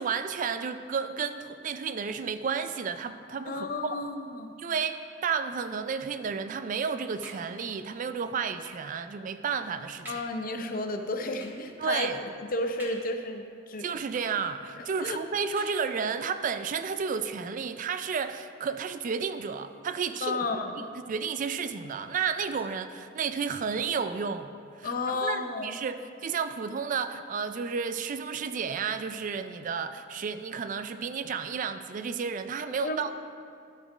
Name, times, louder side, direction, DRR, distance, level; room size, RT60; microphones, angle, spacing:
voice 1, 0.0-4.0 4.6-10.1 11.8-12.2 13.8-20.4 20.8-24.5 24.8-24.9 25.2-33.1, right 6 dB, 40° right, 10 dB, 0.3 m, -32 dB
voice 2, 3.5-4.5 10.1-12.1 12.5-13.9 14.8-15.2 20.2-20.8 24.8-25.8 32.8-33.1, left 2 dB, 45° left, 6 dB, 0.6 m, -32 dB
sound 1, 7.2-7.9 8.7-9.0 9.5-9.6 10.1-10.4 11.4-11.7 12.8-13.4 14.2-14.8 15.6-16.2 17.1-17.2 17.5-17.6, equal, 10° right, 1.4 m, -48 dB
13.0 x 4.4 x 4.9 m, 2.3 s
head